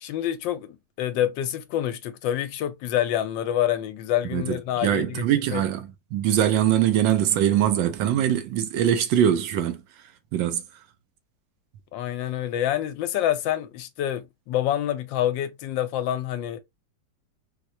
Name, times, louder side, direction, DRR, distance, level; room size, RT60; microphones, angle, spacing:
voice 1, 0.0-5.2 5.5-5.6 11.9-16.6, left 11 dB, 85° left, 1.3 m, -27 dB
voice 2, 4.3-9.8 10.3-10.6, right 10 dB, 85° right, 1.3 m, -22 dB
4.5 x 2.2 x 2.6 m
omnidirectional pair, 2.0 m